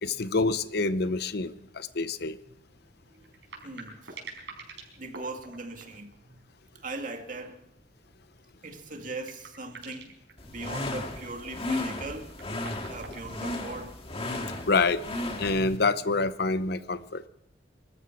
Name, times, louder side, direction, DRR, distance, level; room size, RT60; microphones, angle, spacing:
voice 1, 0.0-2.4 14.7-15.0 15.4-17.2, left 3 dB, 65° left, 0.8 m, -27 dB
sound 1, 1.5-1.6 1.9-2.0 3.1-6.7 7.0-7.4 7.7-7.8 8.7-8.8 9.1-10.3 11.8-13.9 15.0-15.8, right 4 dB, 80° right, 4.9 m, -47 dB
voice 2, 3.6-4.6 4.9-6.4 6.7-7.6 8.6-10.1 10.4-12.3 12.9-14.0, right 2 dB, 50° right, 2.1 m, -40 dB
sound 2, 10.4-15.8, left 2 dB, 35° left, 1.9 m, -35 dB
24.0 x 13.5 x 4.5 m
head